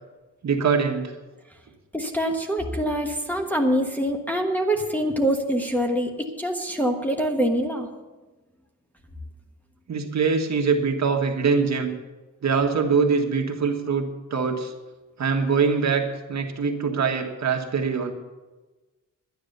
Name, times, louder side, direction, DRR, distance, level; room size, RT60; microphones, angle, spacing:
voice 1, 0.4-1.1 9.9-11.9 12.4-14.7 15.2-18.1, right 5 dB, 55° right, 3 dB, 1.7 m, -23 dB
voice 2, 1.9-7.9, equal, 5° left, 0 dB, 1.3 m, -25 dB
11.5 x 10.0 x 6.7 m, 1.2 s
wide cardioid pair, 140°, 33 cm